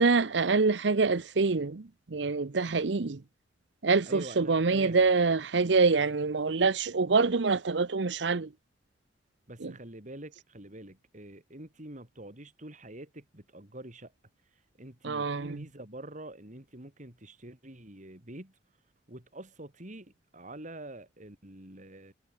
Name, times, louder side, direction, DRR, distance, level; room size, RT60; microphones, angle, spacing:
voice 1, 0.0-3.2 3.8-8.5 9.6-9.7 15.0-15.6, right 4 dB, 70° right, 0.8 m, -26 dB
voice 2, 4.1-5.1 9.5-14.1 14.8-18.6 19.1-22.1, right 1 dB, 45° right, 3.9 m, -46 dB
head